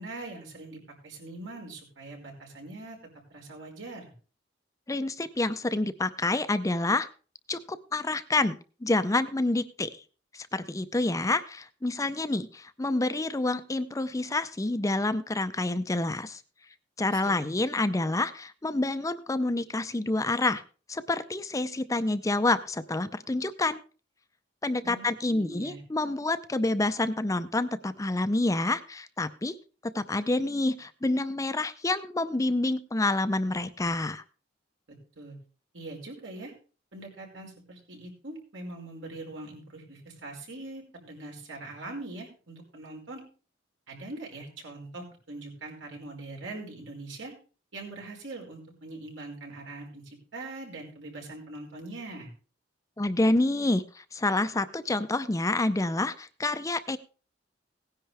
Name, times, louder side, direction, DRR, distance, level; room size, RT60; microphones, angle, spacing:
voice 1, 0.0-3.0 3.3-4.1 17.1-17.5 24.8-25.8 35.1-35.4 35.7-36.5 36.9-43.2 43.9-47.3 47.7-52.3, right 2 dB, 80° right, 0 dB, 4.8 m, -42 dB
voice 2, 4.9-7.1 7.5-10.0 10.3-16.4 17.0-20.6 20.9-23.8 24.6-29.6 29.8-34.2 53.0-57.0, left 2 dB, 15° left, 12 dB, 0.5 m, -28 dB
17.5 x 10.0 x 3.4 m, 0.37 s
head